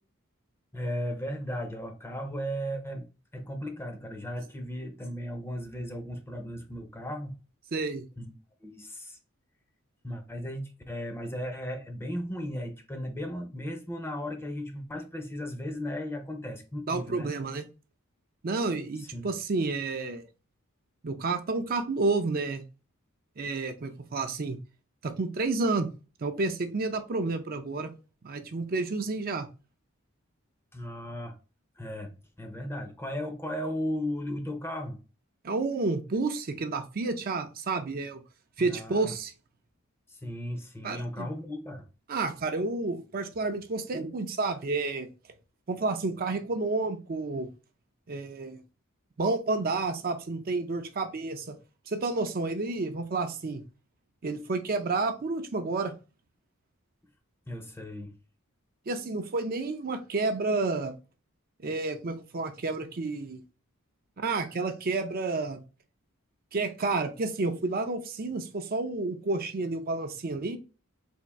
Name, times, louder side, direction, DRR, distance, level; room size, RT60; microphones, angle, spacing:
voice 1, 0.7-3.1 3.3-7.3 8.2-8.3 8.6-9.2 10.0-17.3 19.0-19.3 30.7-31.3 31.8-32.1 32.4-35.0 38.6-39.1 40.1-41.9 57.5-58.1, equal, 10° left, 0.6 m, -36 dB
voice 2, 7.7-8.0 16.9-17.7 18.4-20.2 21.0-22.6 23.4-24.6 25.0-25.9 26.2-27.9 28.2-29.5 35.4-38.2 38.6-39.3 40.8-41.3 42.1-45.1 45.7-47.5 48.1-48.6 49.2-51.5 51.9-53.6 54.2-55.9 58.9-60.9 61.6-63.4 64.2-65.6 66.5-70.6, right 3 dB, 45° right, 0.5 m, -30 dB
3.5 x 2.6 x 4.0 m
head